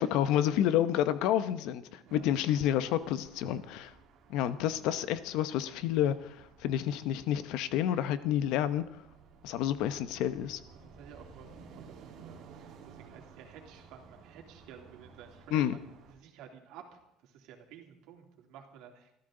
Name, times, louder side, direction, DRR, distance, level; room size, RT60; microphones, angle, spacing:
voice 1, 0.0-3.9 4.3-8.8 9.4-10.6 15.5-15.8, left 11 dB, 70° left, 13 dB, 0.9 m, -29 dB
sound 1, 2.1-16.1, right 5 dB, 50° right, 2.6 m, -55 dB
voice 2, 10.7-19.1, right 8 dB, 70° right, 2 dB, 3.1 m, -53 dB
25.5 x 14.0 x 3.9 m, 0.82 s
cardioid pair, 160°, 0 cm